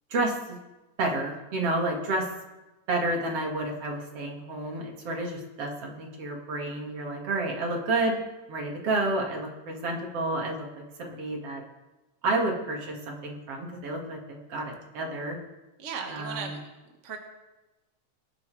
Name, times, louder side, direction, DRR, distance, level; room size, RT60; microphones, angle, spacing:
voice 1, 0.1-0.6 1.0-2.3 2.9-8.2 8.5-10.7 11.0-11.6 12.2-15.4 16.1-16.6, right 2 dB, 55° right, 0 dB, 2.9 m, -30 dB
voice 2, 15.8-16.6 17.0-17.2, right 6 dB, 35° right, 2 dB, 1.4 m, -36 dB
23.5 x 11.0 x 3.4 m, 1.1 s
omnidirectional pair, 3.3 m